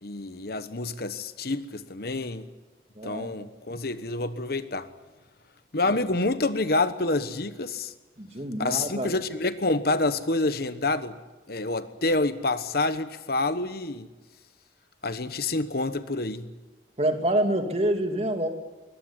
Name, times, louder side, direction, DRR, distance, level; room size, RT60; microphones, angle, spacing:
voice 1, 0.0-2.5 3.0-4.9 5.7-7.9 8.6-11.2 11.5-14.1 15.0-16.5, left 2 dB, 55° left, 1.2 m, -28 dB
voice 2, 3.0-3.3 5.9-6.0 8.2-9.1 17.0-18.5, right 1 dB, 35° right, 2.6 m, -27 dB
22.5 x 20.0 x 9.9 m
head